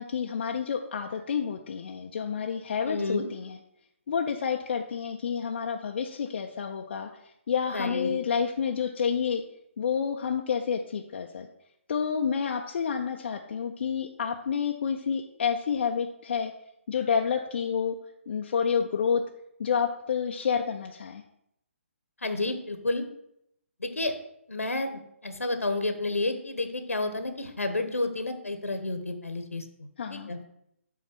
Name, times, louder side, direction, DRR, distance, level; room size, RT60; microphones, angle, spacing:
voice 1, 0.0-3.6 4.1-9.4 9.8-11.5 11.9-16.5 16.9-18.0 18.3-19.2 19.6-21.2 30.0-30.3, left 6 dB, 55° left, 2 dB, 0.6 m, -29 dB
voice 2, 2.9-3.2 7.7-8.1 22.2-23.0 23.8-24.1 24.5-29.6 30.1-30.4, left 2 dB, 85° left, 7 dB, 1.1 m, -30 dB
7.2 x 4.1 x 5.9 m, 0.77 s
figure-of-eight pair, 140°, 7 cm